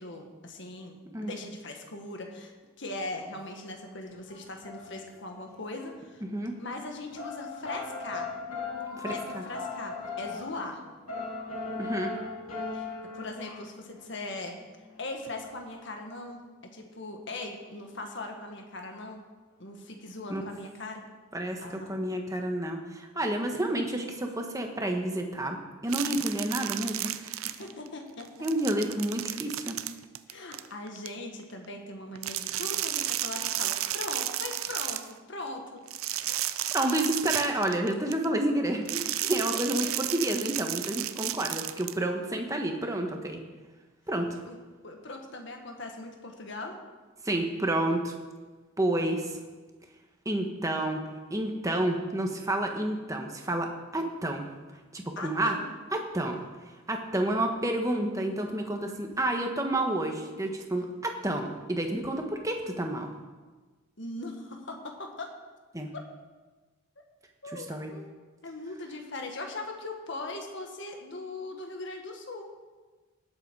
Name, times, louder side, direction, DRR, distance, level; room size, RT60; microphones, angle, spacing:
voice 1, 0.0-6.2 6.6-8.3 9.1-10.8 12.7-14.5 15.0-16.4 16.7-19.2 19.6-21.0 21.6-22.0 27.4-28.5 30.3-35.8 39.4-40.1 44.5-44.6 44.8-46.8 55.1-55.7 64.0-65.3 67.4-68.1 68.4-72.5, left 2 dB, 60° left, 3 dB, 1.8 m, -40 dB
sound 1, 4.1-5.4 5.8-5.9 7.1-14.6 14.9-15.2 15.4-15.9 17.6-17.9 18.9-19.0, left 4 dB, 90° left, 3.1 m, -38 dB
voice 2, 6.2-6.6 9.0-9.4 11.8-12.1 20.3-20.4 21.3-27.1 28.4-29.8 36.7-43.4 44.1-44.4 47.2-48.1 48.8-49.3 50.2-51.0 51.3-54.5 54.9-55.6 55.9-56.4 56.9-63.1 65.7-65.9 67.5-67.9, right 1 dB, 15° right, 3 dB, 1.3 m, -30 dB
sound 2, 25.9-27.9 28.2-31.1 32.2-35.1 35.9-38.2 38.9-41.9, right 13 dB, 80° right, 0.6 m, -33 dB
19.0 x 8.0 x 4.8 m, 1.3 s
head